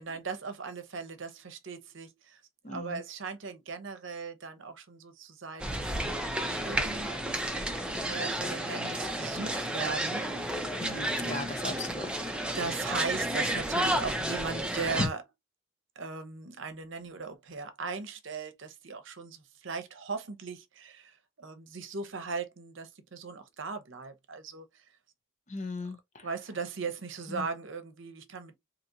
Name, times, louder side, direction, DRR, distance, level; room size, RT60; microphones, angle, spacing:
voice 1, 0.0-2.4 2.7-6.0 6.3-7.2 7.8-10.3 11.5-12.0 12.5-15.2 16.0-24.7 26.2-28.6, right 4 dB, 60° right, 0.7 m, -38 dB
voice 2, 2.6-3.0 10.8-12.2 15.0-15.1 25.5-26.3 27.3-27.4, left 3 dB, 35° left, 0.7 m, -36 dB
sound 1, 5.6-15.1, right 1 dB, 5° right, 0.6 m, -32 dB
4.1 x 2.9 x 2.6 m
head